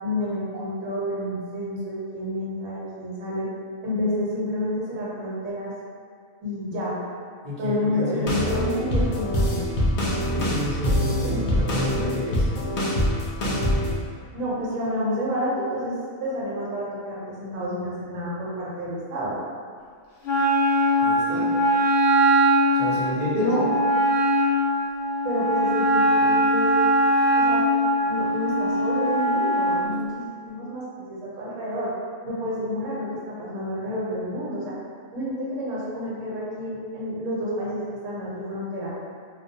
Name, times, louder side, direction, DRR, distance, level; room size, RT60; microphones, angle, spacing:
voice 1, 0.0-3.5 3.8-5.7 6.4-7.0 7.6-9.6 11.2-11.4 14.3-19.3 23.3-23.7 25.2-26.8 27.4-27.6 28.1-31.9 32.2-34.7 35.1-38.9, left 1 dB, 70° right, -7 dB, 1.0 m, -29 dB
voice 2, 7.4-8.5 10.3-12.7 21.0-21.5 22.7-23.5, left 1 dB, 45° right, -9 dB, 0.5 m, -30 dB
sound 1, 8.2-14.0, equal, 85° left, 0.4 m, -24 dB
Wind instrument woodwind instrument, 20.2-29.8, equal, 70° left, 0.9 m, -21 dB
2.3 x 2.1 x 2.6 m, 2.1 s
omnidirectional pair, 1.4 m